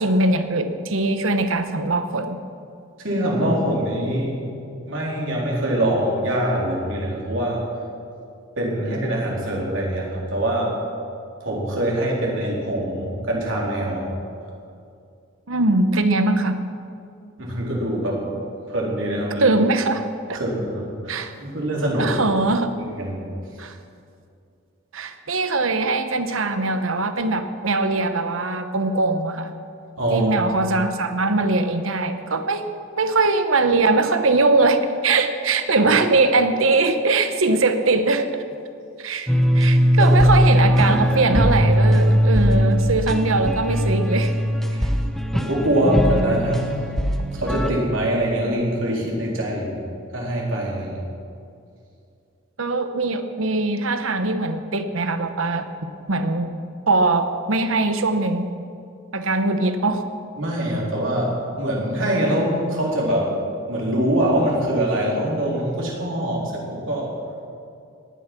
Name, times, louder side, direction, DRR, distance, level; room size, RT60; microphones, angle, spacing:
voice 1, 0.0-2.4 15.5-16.6 19.4-20.4 21.1-21.3 22.0-22.7 23.6-23.7 24.9-29.5 30.1-32.6 32.9-38.3 39.0-44.3 44.8-44.9 52.6-55.7 56.1-56.5 56.9-58.5 59.1-60.0, right 3 dB, 85° right, 8 dB, 1.1 m, -21 dB
voice 2, 3.0-4.4 4.9-7.6 8.6-10.7 11.4-14.1 17.4-18.3 18.7-19.5 20.3-22.2 22.7-23.3 30.0-30.3 40.0-40.2 45.3-46.7 47.3-49.7 50.1-51.0 60.4-63.3 63.7-67.1, right 1 dB, 70° right, -3 dB, 3.9 m, -24 dB
sound 1, 39.3-47.7, equal, ahead, 1.0 m, -19 dB
18.0 x 11.5 x 6.1 m, 2.5 s
head